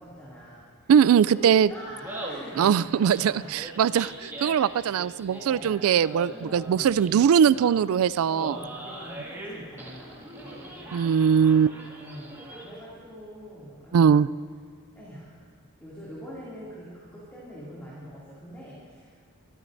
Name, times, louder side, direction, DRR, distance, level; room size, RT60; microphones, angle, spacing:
voice 1, 0.0-3.7 5.3-5.8 6.3-6.9 8.3-11.0 12.0-14.2 14.9-15.4 15.8-19.2, equal, 10° left, -8 dB, 2.4 m, -43 dB
voice 2, 0.9-1.7 2.6-8.5 10.9-11.8 13.9-14.3, right 8 dB, 75° right, 18 dB, 0.3 m, -21 dB
Laughter, 1.9-12.9, right 1 dB, 10° right, 1.9 m, -42 dB
23.5 x 13.0 x 2.6 m, 2.2 s
head